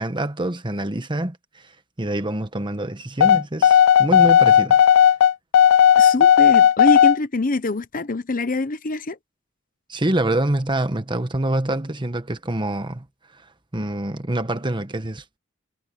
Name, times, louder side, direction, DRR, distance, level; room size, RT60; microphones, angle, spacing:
voice 1, 0.0-1.6 2.0-4.8 9.9-13.0 13.7-15.2, right 1 dB, 25° right, 1.3 m, -25 dB
sound 1, 3.2-7.2, left 9 dB, 70° left, 0.3 m, -14 dB
voice 2, 6.0-9.2, left 2 dB, 40° left, 0.9 m, -24 dB
head